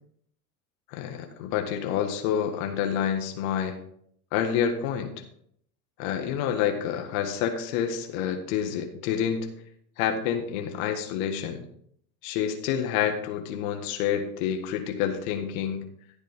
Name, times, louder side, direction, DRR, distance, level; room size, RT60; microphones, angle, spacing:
voice 1, 0.9-3.8 4.3-5.2 6.0-9.5 10.0-11.7 12.2-15.9, left 8 dB, 65° left, 5 dB, 1.8 m, -28 dB
15.0 x 7.3 x 3.6 m, 0.66 s
hypercardioid pair, 105°, 45 cm